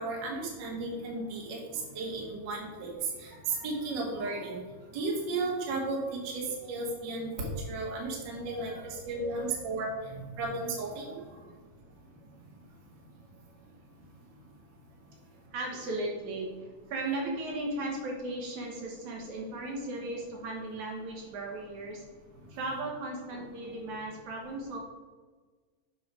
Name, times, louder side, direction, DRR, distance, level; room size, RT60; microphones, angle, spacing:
voice 1, 0.0-2.9 3.2-4.6 4.9-8.7 9.0-11.2, right 3 dB, 45° right, -1 dB, 1.6 m, -34 dB
voice 2, 8.5-9.7 11.3-11.5 15.5-22.1 22.5-24.8, right 2 dB, 70° right, 0 dB, 2.3 m, -37 dB
7.2 x 5.5 x 4.8 m, 1.4 s
omnidirectional pair, 3.8 m